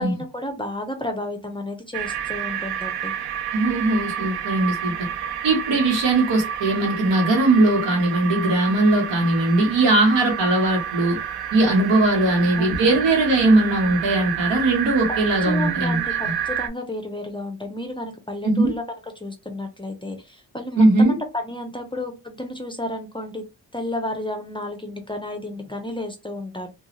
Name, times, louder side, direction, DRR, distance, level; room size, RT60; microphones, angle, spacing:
voice 1, 0.0-3.1 12.3-12.9 15.1-15.2 15.4-18.8 19.2-23.4 23.7-26.7, left 1 dB, 10° left, 0.5 m, -32 dB
sound 1, 1.9-16.7, right 9 dB, 65° right, 0.5 m, -29 dB
voice 2, 3.5-5.1 5.4-11.2 11.5-16.0 16.2-16.3 18.4-18.7 20.8-21.2, right 2 dB, 85° right, 1.1 m, -19 dB
2.4 x 2.3 x 2.9 m
cardioid pair, 75°, 43 cm